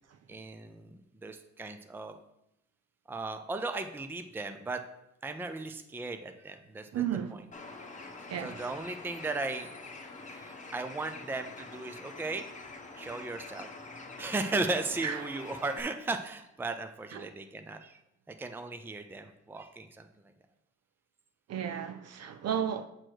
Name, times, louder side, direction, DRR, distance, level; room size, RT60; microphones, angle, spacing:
voice 1, 0.3-2.2 3.1-4.8 5.2-7.0 7.3-7.5 8.4-9.7 10.3-12.4 13.0-13.7 14.2-18.0 18.3-20.3, right 3 dB, 5° right, 0.5 m, -36 dB
voice 2, 6.9-7.3 8.3-8.5 15.0-15.2 17.1-17.2 21.5-22.9, right 9 dB, 55° right, 0.5 m, -33 dB
Bird, 7.5-15.8, left 3 dB, 25° left, 1.1 m, -46 dB
7.8 x 4.4 x 4.5 m
cardioid pair, 90°, 30 cm